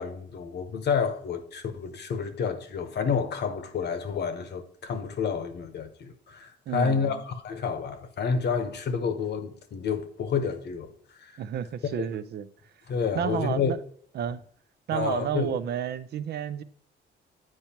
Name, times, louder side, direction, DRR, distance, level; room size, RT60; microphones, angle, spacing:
voice 1, 0.0-10.9 11.2-11.4 12.0-12.1 12.9-13.7 14.9-15.6, left 6 dB, 60° left, 0.9 m, -29 dB
voice 2, 6.7-7.2 11.4-12.5 13.1-13.8 14.1-14.4 14.9-16.6, right 9 dB, 55° right, 0.4 m, -31 dB
8.7 x 4.5 x 2.8 m
cardioid pair, 90°, 20 cm